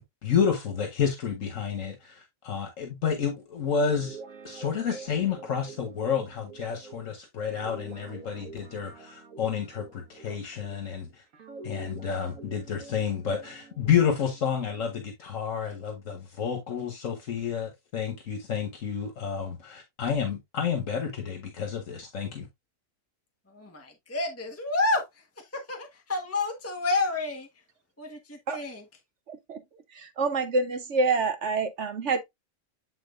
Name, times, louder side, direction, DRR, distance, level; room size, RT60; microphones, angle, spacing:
voice 1, 0.0-4.2 4.4-11.2 11.6-22.5, left 7 dB, 75° left, 1.6 m, -30 dB
Guitar, 3.7-10.9 11.3-15.0, right 4 dB, 90° right, 1.6 m, -47 dB
voice 2, 23.5-27.5 28.0-28.8, left 2 dB, 10° left, 1.2 m, -30 dB
voice 3, 29.3-29.6 29.9-32.2, right 3 dB, 65° right, 1.1 m, -27 dB
8.6 x 4.4 x 2.5 m
omnidirectional pair, 1.4 m